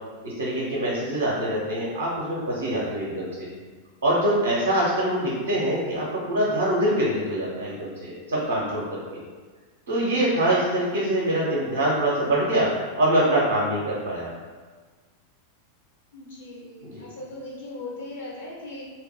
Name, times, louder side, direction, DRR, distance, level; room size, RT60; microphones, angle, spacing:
voice 1, 0.2-3.5 4.0-9.2 9.9-12.7 13.0-14.3 16.8-17.1, right 1 dB, 70° right, -5 dB, 0.6 m, -24 dB
voice 2, 16.1-18.8, left 2 dB, 60° left, -4 dB, 0.9 m, -38 dB
2.8 x 2.0 x 3.2 m, 1.4 s
figure-of-eight pair, 90°, 0 cm